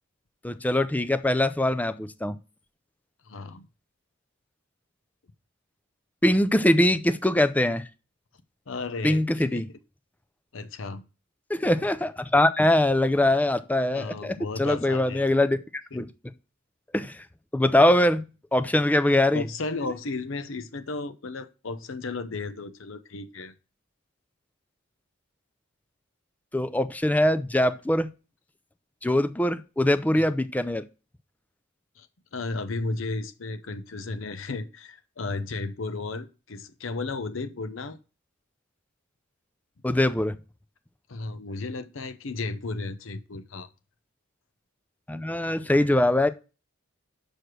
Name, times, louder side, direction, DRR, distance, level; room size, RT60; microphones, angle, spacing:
voice 1, 0.4-2.4 6.2-7.9 9.0-9.7 11.5-15.6 15.9-16.1 16.9-17.2 17.5-18.2 18.5-19.5 26.5-28.1 29.0-30.8 39.8-40.4 45.1-46.3, left 1 dB, 5° left, 10 dB, 0.4 m, -22 dB
voice 2, 3.2-3.7 8.7-9.6 10.5-11.0 13.9-15.2 15.9-16.0 19.3-23.5 30.1-30.2 32.0-32.1 32.3-38.0 41.1-43.7, left 3 dB, 65° left, 10 dB, 0.7 m, -34 dB
6.4 x 4.9 x 6.0 m, 0.32 s
head